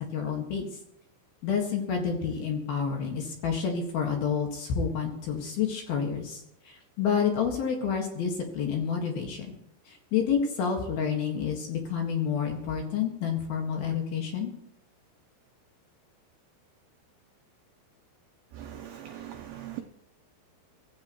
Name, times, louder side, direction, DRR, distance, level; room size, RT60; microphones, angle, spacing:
voice 1, 0.1-0.7 1.4-9.5 9.9-14.5, left 7 dB, 60° left, 1 dB, 3.0 m, -29 dB
voice 2, 18.5-19.8, right 12 dB, 85° right, 5 dB, 2.4 m, -40 dB
23.5 x 16.0 x 3.1 m, 0.80 s
omnidirectional pair, 5.9 m